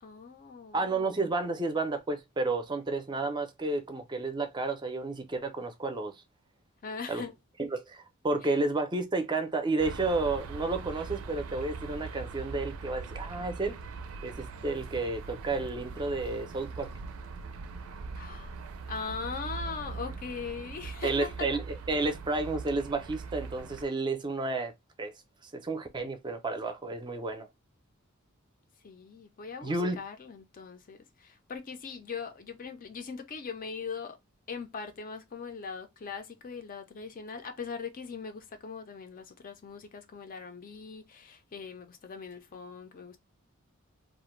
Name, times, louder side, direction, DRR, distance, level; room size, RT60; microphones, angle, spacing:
voice 1, 0.0-0.9 6.8-7.3 18.1-18.5 18.9-21.5 28.8-34.2 34.5-43.2, left 5 dB, 40° left, 0.5 m, -40 dB
voice 2, 0.7-6.2 7.1-7.2 7.6-13.8 14.2-16.9 21.0-24.7 25.0-25.1 25.5-27.5 29.6-30.0, right 3 dB, 20° right, 0.5 m, -31 dB
sound 1, 9.8-23.9, right 4 dB, 80° right, 0.4 m, -41 dB
2.4 x 2.1 x 3.0 m
head